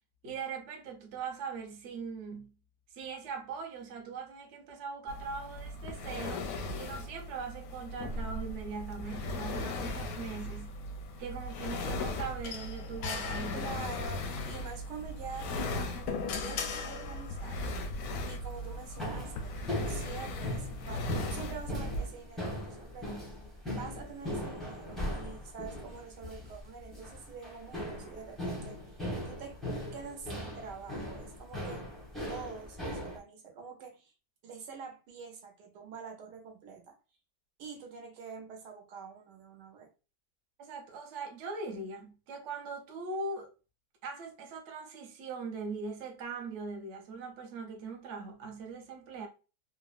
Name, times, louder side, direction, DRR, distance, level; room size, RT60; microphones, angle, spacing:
voice 1, 0.2-2.5 2.9-10.7 11.2-13.7 40.6-43.5 44.0-49.3, right 4 dB, 60° right, 0.8 m, -41 dB
sound 1, 5.1-22.1, left 1 dB, 70° left, 0.8 m, -38 dB
sound 2, 12.4-14.2 15.5-17.6, left 6 dB, 85° left, 1.2 m, -39 dB
voice 2, 13.5-17.7 18.3-23.3 23.7-29.0 29.2-29.6 29.9-31.8 32.3-34.1 34.4-36.9 37.6-39.9, right 5 dB, 80° right, 1.4 m, -46 dB
sound 3, 18.5-33.2, left 1 dB, ahead, 0.3 m, -39 dB
3.5 x 2.0 x 2.3 m
omnidirectional pair, 1.8 m